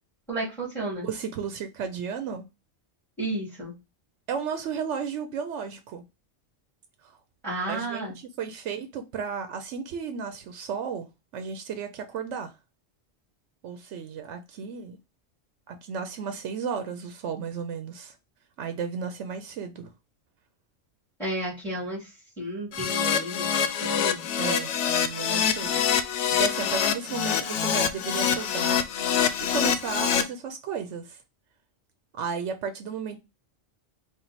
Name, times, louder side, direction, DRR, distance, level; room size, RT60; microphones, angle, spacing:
voice 1, 0.3-1.1 3.2-3.7 7.4-8.1 21.2-22.1 22.4-24.3, right 1 dB, ahead, 2.2 m, -32 dB
voice 2, 1.0-2.4 4.3-6.0 7.0-7.2 7.7-11.1 11.3-12.5 13.6-15.0 15.7-18.2 18.6-19.9 24.4-28.8 29.4-31.2 32.1-33.2, right 6 dB, 90° right, 0.9 m, -34 dB
Keyboard (musical), 22.7-30.2, left 8 dB, 85° left, 0.9 m, -25 dB
4.4 x 2.4 x 4.0 m
omnidirectional pair, 1.2 m